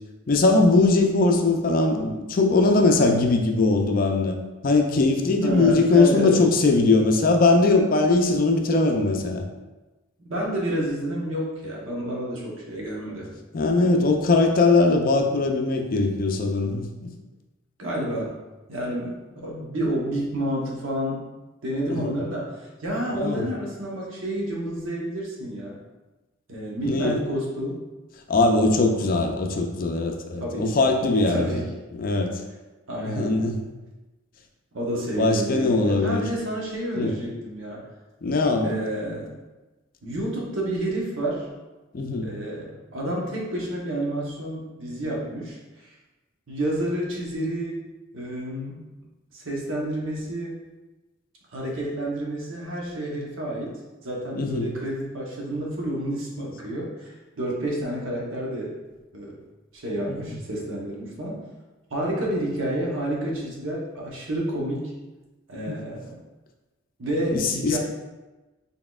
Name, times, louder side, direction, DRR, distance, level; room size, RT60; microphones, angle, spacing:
voice 1, 0.3-4.3 4.6-9.4 13.5-16.9 21.9-22.2 23.1-23.4 26.8-27.2 28.3-31.6 32.0-32.4 33.1-33.6 35.2-36.3 37.0-37.1 38.2-38.7 41.9-42.3 54.4-54.7 60.1-60.2 65.7-65.8 67.3-67.8, left 3 dB, 45° left, 3 dB, 0.4 m, -20 dB
voice 2, 5.4-6.4 10.2-13.3 17.8-18.3 18.7-21.3 21.6-25.8 26.5-27.9 30.4-30.9 31.3-31.7 32.9-33.4 34.7-37.8 38.6-39.4 40.0-41.5 42.2-45.6 46.5-47.8 48.1-48.9 49.3-50.6 51.5-58.7 59.1-59.4 59.7-61.4 61.9-64.9 65.5-66.2 67.0-67.8, right 1 dB, 80° right, -3 dB, 0.9 m, -29 dB
4.0 x 3.5 x 2.3 m, 1.1 s
head